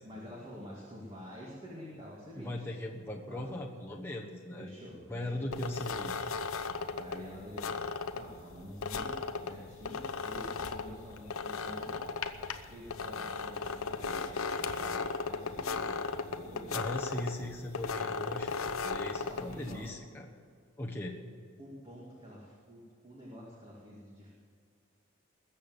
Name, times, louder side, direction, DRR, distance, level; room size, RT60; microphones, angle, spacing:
voice 1, 0.0-3.0 3.3-3.4 4.6-5.4 6.9-12.0 12.6-16.9 19.1-19.9 21.6-24.3, equal, 25° right, -5 dB, 2.3 m, -48 dB
voice 2, 2.4-4.7 5.1-6.3 16.7-20.3 20.8-21.2, left 1 dB, 10° left, -1 dB, 1.2 m, -39 dB
sound 1, 5.5-19.9, left 4 dB, 80° left, 0.9 m, -37 dB
20.5 x 7.4 x 8.0 m, 2.1 s
head